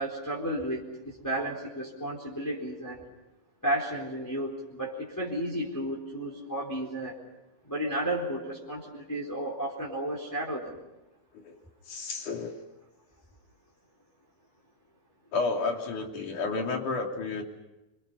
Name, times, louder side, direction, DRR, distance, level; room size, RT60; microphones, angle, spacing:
voice 1, 0.0-3.0 3.6-7.2 7.7-10.8, right 1 dB, 5° left, -3 dB, 3.8 m, -33 dB
voice 2, 11.9-12.6 15.3-17.4, left 4 dB, 70° left, 2 dB, 4.6 m, -31 dB
29.5 x 25.0 x 5.6 m, 0.97 s
omnidirectional pair, 3.7 m